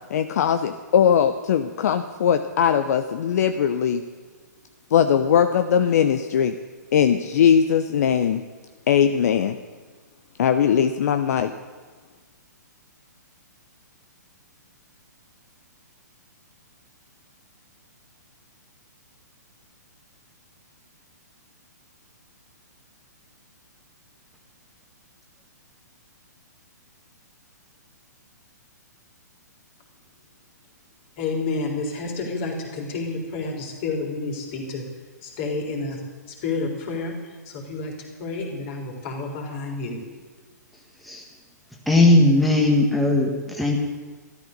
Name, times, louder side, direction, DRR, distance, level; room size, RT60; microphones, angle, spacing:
voice 1, 0.1-4.0 4.9-6.6 6.9-8.4 8.9-9.6 10.4-11.5, left 8 dB, 60° left, 9 dB, 0.8 m, -20 dB
voice 2, 31.2-34.9 35.2-36.0 36.3-37.9 38.2-40.0, left 3 dB, 40° left, 1 dB, 4.0 m, -30 dB
voice 3, 41.9-43.8, left 2 dB, ahead, -1 dB, 1.5 m, -18 dB
13.0 x 13.0 x 6.7 m, 1.5 s
hypercardioid pair, 135°, 10 cm